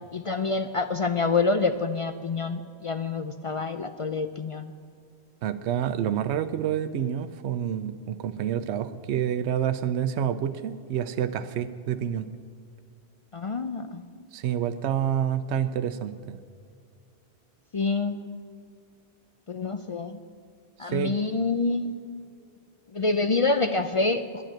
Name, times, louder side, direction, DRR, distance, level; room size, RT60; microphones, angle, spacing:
voice 1, 0.1-4.7 13.3-14.0 17.7-18.2 19.5-20.2 20.8-21.9 22.9-24.4, left 3 dB, 50° left, 9 dB, 0.4 m, -27 dB
voice 2, 5.4-12.3 14.3-16.4 20.8-21.1, right 9 dB, 85° right, 11 dB, 0.9 m, -28 dB
10.5 x 9.1 x 8.8 m, 2.3 s
omnidirectional pair, 1.1 m